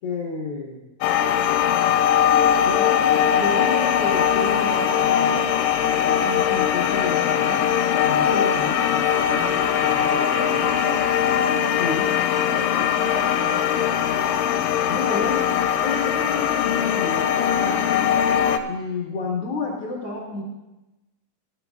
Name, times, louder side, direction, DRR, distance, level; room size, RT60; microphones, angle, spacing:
voice 1, 0.0-0.8 2.6-5.4 5.8-7.7 8.0-9.1 11.8-12.1 14.9-15.5 15.8-18.2 18.7-20.4, left 3 dB, 65° left, -3 dB, 1.5 m, -31 dB
sound 1, 1.0-18.6, left 9 dB, 80° left, 2.5 m, -21 dB
voice 2, 9.2-11.9 12.4-14.1, right 5 dB, 80° right, -1 dB, 1.6 m, -37 dB
19.0 x 12.0 x 2.3 m, 1.0 s
omnidirectional pair, 5.1 m